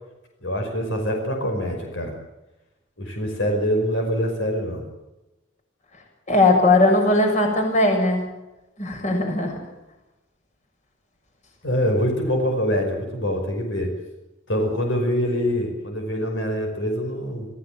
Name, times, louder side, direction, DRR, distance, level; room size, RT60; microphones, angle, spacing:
voice 1, 0.4-2.1 3.0-4.8 11.6-13.9 14.5-17.5, equal, 70° left, 3 dB, 5.4 m, -24 dB
voice 2, 6.3-8.2 8.8-9.6, left 2 dB, 40° left, 3 dB, 6.5 m, -18 dB
27.0 x 16.0 x 7.7 m, 0.99 s
head